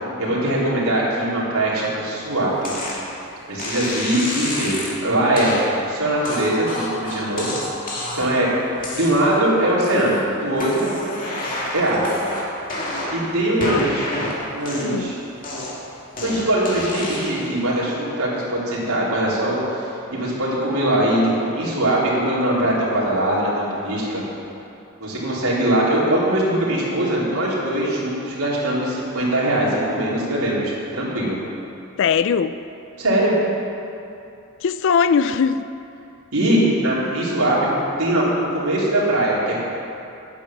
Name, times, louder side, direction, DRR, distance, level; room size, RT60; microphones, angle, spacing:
voice 1, 0.2-2.7 3.5-5.5 5.9-7.5 8.2-8.5 8.9-10.9 11.7-12.2 13.1-14.1 14.5-15.2 16.2-24.2 25.0-31.4 33.0-33.3 36.3-39.6, right 1 dB, 80° right, 3.6 m, -21 dB
sound 1, 2.6-3.0 3.6-5.0 5.4-5.6 6.2-8.4 8.8-9.4 9.8-10.2 10.5-13.3 13.6-15.1 15.4-17.5, left 1 dB, 40° left, 2.3 m, -29 dB
voice 2, 32.0-32.6 34.6-35.7, left 6 dB, 60° left, 0.4 m, -20 dB
10.0 x 9.4 x 7.3 m
head